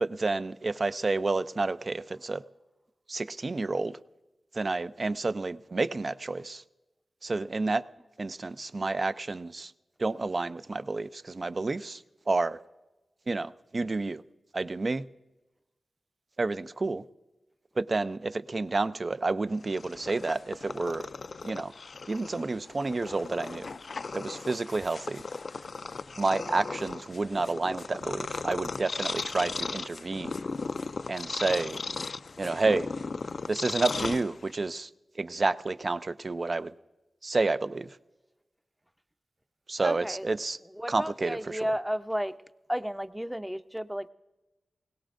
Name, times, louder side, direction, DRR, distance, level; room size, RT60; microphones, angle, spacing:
voice 1, 0.0-2.4 3.1-3.9 4.6-6.6 7.2-7.8 8.2-9.7 10.0-11.1 11.3-12.0 12.3-12.6 13.3-14.2 14.5-15.0 16.4-17.0 17.8-21.0 21.4-21.7 22.1-23.6 24.1-25.2 26.2-30.3 31.1-31.8 32.4-32.9 33.5-34.9 35.2-36.7 37.2-37.9 39.7-40.6 40.9-41.6, right 3 dB, 50° right, 14 dB, 0.5 m, -29 dB
Purr, 19.6-34.7, left 4 dB, 65° left, 0.3 m, -37 dB
voice 2, 39.8-40.3 40.7-42.3 42.7-44.1, equal, 5° right, 10 dB, 0.6 m, -32 dB
20.5 x 17.5 x 2.5 m, 1.1 s
cardioid pair, 55°, 0 cm